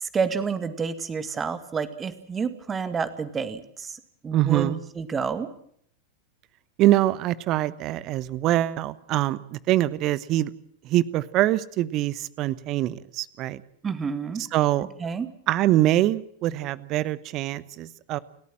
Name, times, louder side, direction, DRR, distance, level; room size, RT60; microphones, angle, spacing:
voice 1, 0.0-5.5 13.8-14.4 15.0-15.3, right 5 dB, 20° right, 11 dB, 2.1 m, -29 dB
voice 2, 4.3-4.8 6.8-10.5 10.8-13.6 14.4-14.9 15.5-18.2, right 14 dB, 35° right, 19 dB, 1.0 m, -24 dB
29.5 x 13.5 x 7.5 m, 0.66 s
figure-of-eight pair, 90°, 0 cm